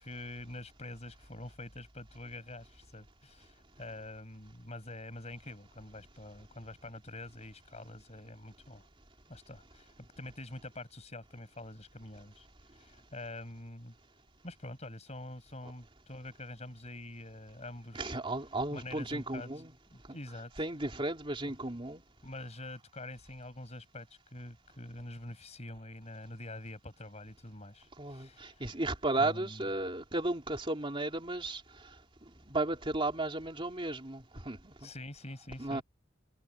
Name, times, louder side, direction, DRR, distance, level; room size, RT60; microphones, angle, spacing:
voice 1, 0.0-8.8 9.3-14.0 14.4-18.2 18.7-19.5 19.9-20.5 21.4-21.6 22.2-28.7 29.2-29.7 34.8-35.8, left 1 dB, 35° left, 7.4 m, -46 dB
voice 2, 17.9-19.7 20.0-20.2 20.6-22.0 28.0-34.9 35.6-35.8, right 2 dB, 25° right, 3.4 m, -35 dB
head